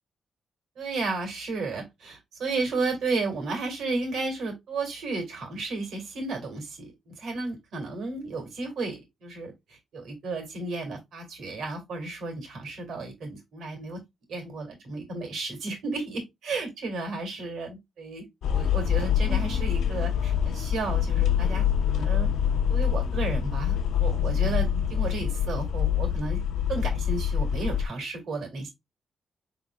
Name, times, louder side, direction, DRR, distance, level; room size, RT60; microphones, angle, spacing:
voice 1, 0.8-14.0 14.3-21.6 21.9-22.3 22.7-26.4 26.7-28.7, right 3 dB, 80° right, 2.2 m, -33 dB
sound 1, 18.4-27.9, left 8 dB, 90° left, 0.5 m, -25 dB
4.9 x 3.8 x 2.3 m
wide cardioid pair, 140°, 0 cm